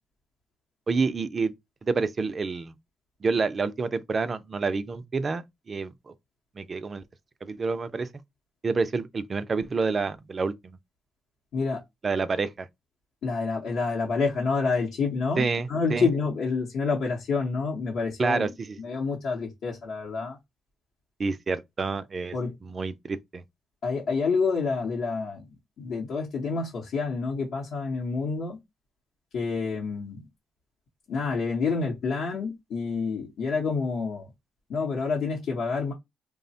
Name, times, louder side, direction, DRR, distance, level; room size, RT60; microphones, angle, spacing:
voice 1, 0.9-1.5 1.8-2.8 3.2-6.1 6.6-7.0 7.4-8.1 8.6-10.8 12.0-12.7 15.4-16.1 18.2-18.8 21.2-22.4 22.6-23.4, right 4 dB, 35° right, 0.3 m, -28 dB
voice 2, 13.2-18.5 18.8-20.4 22.3-22.5 23.8-25.5 25.8-28.6 29.3-30.2 31.1-34.3 34.7-35.9, left 4 dB, 70° left, 0.7 m, -28 dB
3.1 x 2.1 x 2.7 m
cardioid pair, 90°, 0 cm